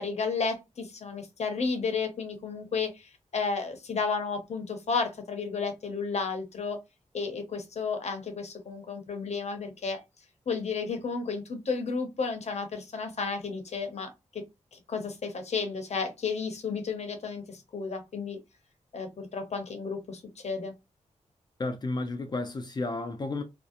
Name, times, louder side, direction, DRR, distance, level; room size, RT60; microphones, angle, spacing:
voice 1, 0.0-6.8 7.1-10.0 10.5-14.4 14.7-18.4 18.9-20.7, left 5 dB, 60° left, 0.7 m, -32 dB
voice 2, 21.6-23.4, left 2 dB, 35° left, 0.4 m, -32 dB
2.6 x 2.1 x 2.4 m
cardioid pair, 70°, 12 cm